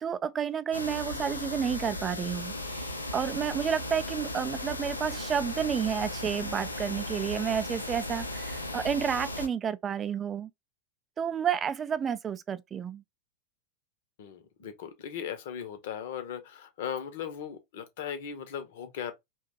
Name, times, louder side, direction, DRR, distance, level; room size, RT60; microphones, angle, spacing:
voice 1, 0.0-10.5 11.2-13.0, right 8 dB, 25° right, 0.3 m, -31 dB
sound 1, 0.7-9.5, left 1 dB, 85° left, 0.6 m, -36 dB
voice 2, 14.2-19.1, left 8 dB, 55° left, 0.8 m, -38 dB
2.9 x 2.3 x 3.9 m
figure-of-eight pair, 90°, 0 cm